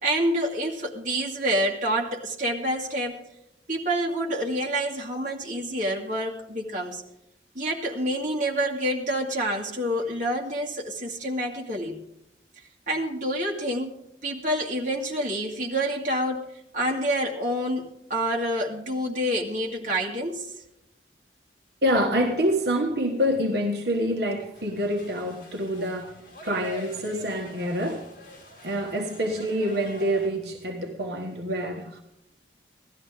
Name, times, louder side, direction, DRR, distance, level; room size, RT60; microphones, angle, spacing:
voice 1, 0.0-3.2 3.7-7.0 7.5-12.0 12.9-16.5 16.7-20.5, right 1 dB, 45° right, 0 dB, 2.1 m, -27 dB
voice 2, 21.8-28.1 28.6-32.0, equal, 70° right, 2 dB, 1.3 m, -26 dB
sound 1, 24.5-30.3, equal, 50° left, 3.5 m, -45 dB
17.0 x 13.0 x 3.7 m, 0.83 s
head